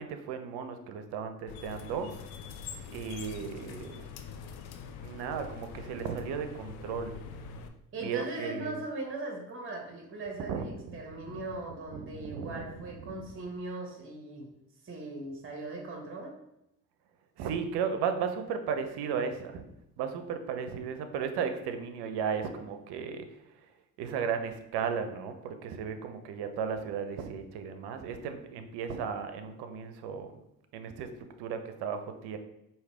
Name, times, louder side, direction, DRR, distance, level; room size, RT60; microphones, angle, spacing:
voice 1, 0.0-2.1 2.9-4.1 5.0-7.2 8.0-8.8 10.5-11.0 11.2-11.4 11.9-12.8 13.0-13.3 17.4-19.6 20.0-23.4 24.0-30.3 30.7-32.4, right 6 dB, 70° right, 8 dB, 0.7 m, -35 dB
sound 1, 1.5-7.7, left 6 dB, 60° left, 0.6 m, -44 dB
voice 2, 7.9-14.5 14.8-16.4, right 2 dB, 30° right, 1 dB, 1.1 m, -39 dB
4.9 x 2.8 x 3.3 m, 0.85 s
hypercardioid pair, 55°, 42 cm